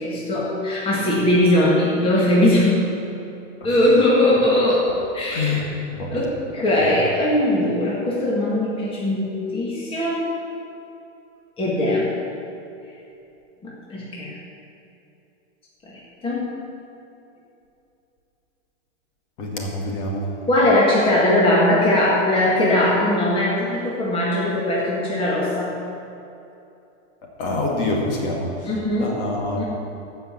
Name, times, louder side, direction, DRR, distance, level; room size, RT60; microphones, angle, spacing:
voice 1, 0.0-2.8 3.6-4.9 5.1-5.6 6.1-10.2 11.6-12.1 13.6-14.3 16.2-16.5 20.5-25.8 28.7-29.2 29.6-29.7, left 1 dB, 15° left, -6 dB, 1.9 m, -20 dB
voice 2, 5.3-6.2 19.4-20.3 27.4-28.7 29.0-29.6, left 2 dB, 45° left, -1 dB, 2.4 m, -26 dB
14.5 x 5.8 x 7.4 m, 2.8 s
supercardioid pair, 155°, 38 cm